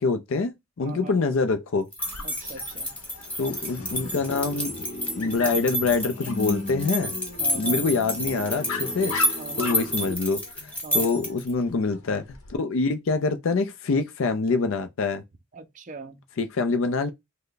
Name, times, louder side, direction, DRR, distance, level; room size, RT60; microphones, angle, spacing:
voice 1, 0.0-1.9 3.4-4.7 5.2-7.1 7.5-9.2 9.6-12.2 12.5-15.2 16.4-17.1, left 4 dB, 65° left, 0.4 m, -25 dB
voice 2, 0.8-1.2 2.2-2.9 7.4-7.8 9.4-9.7 10.8-11.1 15.5-16.2, right 4 dB, 35° right, 0.4 m, -40 dB
sound 1, 1.9-11.5, equal, 5° left, 0.7 m, -30 dB
Dog, 2.0-12.6, left 4 dB, 80° left, 0.9 m, -40 dB
sound 2, 3.8-10.1, left 1 dB, 35° left, 0.8 m, -37 dB
3.2 x 2.1 x 3.8 m
head